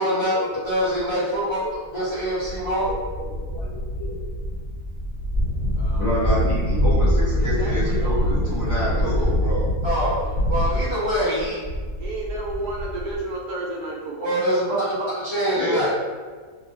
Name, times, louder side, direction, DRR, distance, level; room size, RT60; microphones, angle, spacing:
voice 1, 0.0-0.4 0.6-1.6 1.9-2.9 9.8-11.6 14.2-15.9, equal, 50° left, -11 dB, 0.3 m, -24 dB
sound 1, 1.0-1.1 1.7-1.8 2.2-13.2, equal, 40° right, 1.2 m, -24 dB
voice 2, 2.9-4.1 6.0-8.2 8.4-9.7 14.2-14.3 15.5-15.9, left 1 dB, 15° left, -12 dB, 0.8 m, -28 dB
voice 3, 5.8-6.3 7.4-9.3 10.2-10.5 12.0-14.3, right 2 dB, 75° right, -3 dB, 1.1 m, -33 dB
2.8 x 2.6 x 2.6 m, 1.5 s
omnidirectional pair, 1.6 m